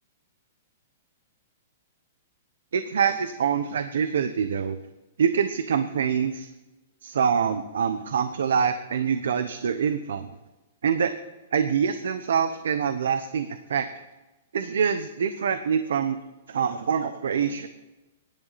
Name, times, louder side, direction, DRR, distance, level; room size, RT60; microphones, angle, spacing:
voice 1, 2.7-4.8 5.2-6.5 7.0-10.3 10.8-11.1 11.5-13.9 14.5-16.2 16.5-17.7, right 7 dB, 80° right, 10 dB, 0.9 m, -25 dB
20.0 x 10.5 x 4.2 m, 1.1 s
hypercardioid pair, 180°, 0 cm